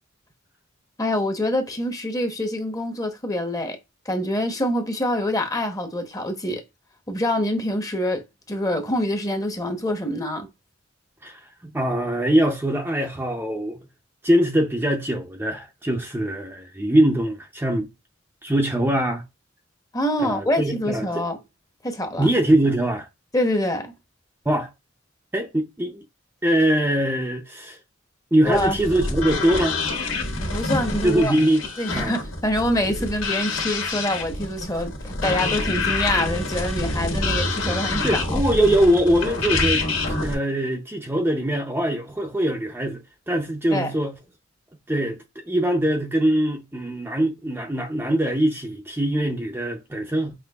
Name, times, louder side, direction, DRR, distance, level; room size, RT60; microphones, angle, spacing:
voice 1, 1.0-3.8 4.1-6.6 7.1-10.5 19.9-21.4 21.8-22.3 23.3-23.9 28.4-28.8 30.4-31.3 31.8-38.4 43.7-43.9, left 1 dB, 20° left, 0.8 m, -25 dB
voice 2, 11.2-13.8 14.2-17.9 18.4-19.2 20.2-21.2 22.2-23.1 24.4-24.7 25.3-26.0 26.4-27.8 28.3-29.8 31.0-31.7 31.9-32.1 37.7-44.2 44.9-50.3, right 1 dB, 10° right, 0.5 m, -22 dB
sound 1, 28.5-40.3, left 3 dB, 85° left, 1.6 m, -27 dB
5.8 x 2.9 x 2.3 m
head